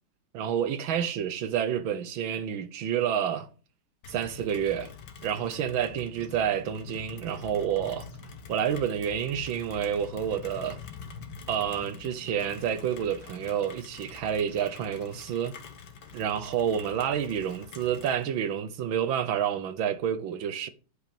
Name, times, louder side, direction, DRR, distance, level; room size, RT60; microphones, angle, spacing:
voice 1, 0.3-3.5 4.1-4.9 5.2-8.1 8.5-10.8 11.5-15.6 16.1-20.7, right 9 dB, 75° right, 1.7 m, -29 dB
Rain, 4.0-18.2, left 6 dB, 60° left, 1.7 m, -46 dB
10.5 x 5.6 x 5.3 m
omnidirectional pair, 2.2 m